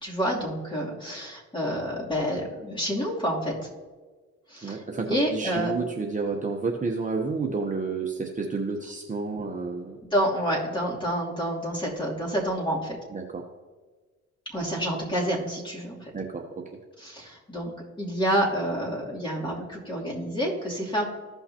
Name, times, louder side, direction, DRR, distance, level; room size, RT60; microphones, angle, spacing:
voice 1, 0.0-3.5 4.5-4.8 5.1-5.7 10.0-13.0 14.5-16.1 17.0-17.7 18.0-21.0, equal, 15° left, -5 dB, 2.9 m, -28 dB
voice 2, 4.6-10.0 13.1-13.4 16.1-16.6, right 4 dB, 25° right, 1 dB, 0.9 m, -30 dB
15.5 x 5.7 x 2.9 m, 1.3 s
cardioid pair, 90°, 30 cm